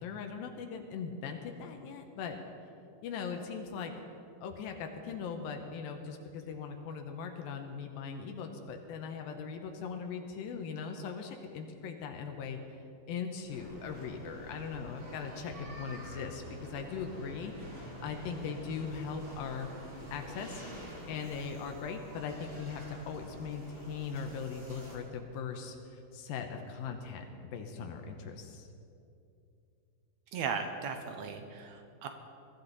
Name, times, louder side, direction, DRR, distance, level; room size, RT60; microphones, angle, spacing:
voice 1, 0.0-2.4 3.0-3.9 4.4-19.7 20.1-20.6 21.1-28.7, left 6 dB, 85° left, 4 dB, 2.7 m, -40 dB
sound 1, 13.5-25.0, equal, 35° right, 3.9 m, -47 dB
voice 2, 30.3-32.1, right 6 dB, 75° right, 6 dB, 1.7 m, -37 dB
22.0 x 13.5 x 4.0 m, 2.6 s
omnidirectional pair, 4.1 m